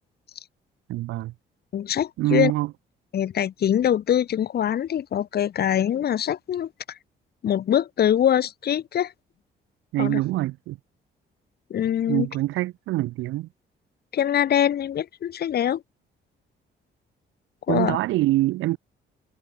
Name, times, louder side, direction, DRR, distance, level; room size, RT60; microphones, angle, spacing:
voice 1, 0.9-1.3 2.2-2.7 9.9-10.8 12.1-13.5 17.7-18.8, right 17 dB, 85° right, 0.6 m, -24 dB
voice 2, 1.7-2.5 3.1-7.0 7.4-9.1 10.0-10.2 11.7-12.3 14.1-15.8 17.7-18.0, left 10 dB, 55° left, 0.8 m, -23 dB
cardioid pair, 90°, 20 cm